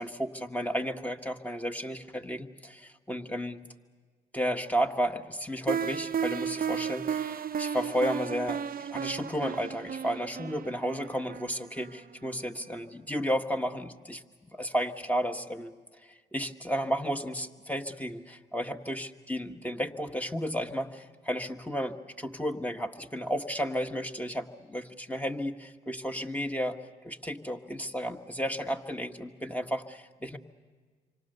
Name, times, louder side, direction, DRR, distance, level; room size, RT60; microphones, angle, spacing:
voice 1, 0.0-3.6 4.3-14.2 14.5-15.7 16.0-26.8 27.0-30.4, equal, 10° left, 5 dB, 1.6 m, -33 dB
sound 1, 5.7-12.4, right 7 dB, 55° right, 0.7 m, -34 dB
27.0 x 25.0 x 6.8 m, 1.5 s
supercardioid pair, 45°, 18 cm